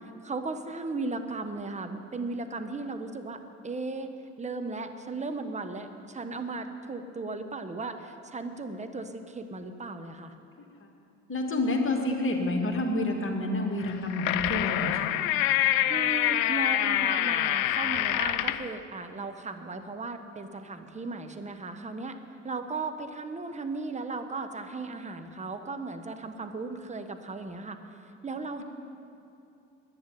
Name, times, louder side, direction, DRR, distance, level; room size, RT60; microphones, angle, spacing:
voice 1, 0.2-4.1 4.4-10.3 15.9-22.2 22.4-27.8 28.2-28.6, right 3 dB, 20° right, 7 dB, 1.2 m, -36 dB
voice 2, 11.3-15.1, left 2 dB, 30° left, 1 dB, 2.5 m, -29 dB
sound 1, 13.8-18.7, left 13 dB, 60° left, 0.6 m, -26 dB
10.5 x 10.0 x 10.0 m, 2.8 s
hypercardioid pair, 60°, 39 cm